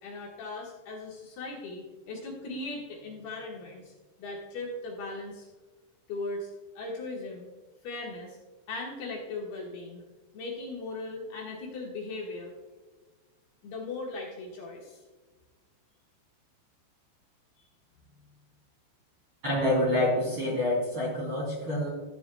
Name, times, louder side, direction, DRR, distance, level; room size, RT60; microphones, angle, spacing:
voice 1, 0.0-3.9 4.2-5.5 6.1-7.5 7.8-8.4 8.7-10.0 10.3-12.5 13.6-15.0, left 2 dB, 65° left, -3 dB, 3.0 m, -38 dB
voice 2, 19.4-21.9, left 1 dB, 35° right, -5 dB, 2.8 m, -27 dB
14.5 x 11.0 x 2.3 m, 1.3 s
omnidirectional pair, 5.5 m